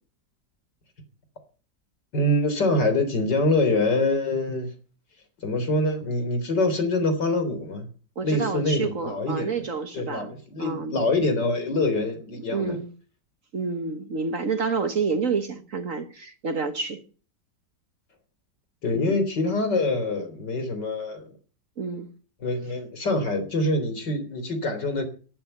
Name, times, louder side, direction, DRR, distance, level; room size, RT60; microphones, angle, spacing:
voice 1, 2.1-4.7 5.4-7.9 8.2-9.6 9.9-12.8 18.8-21.2 22.4-25.1, left 2 dB, 75° left, 4.3 m, -25 dB
voice 2, 8.1-11.0 12.5-12.9 13.5-17.0 18.9-19.2 21.8-22.1, right 4 dB, 50° right, 1.7 m, -29 dB
14.0 x 12.0 x 6.7 m
omnidirectional pair, 1.9 m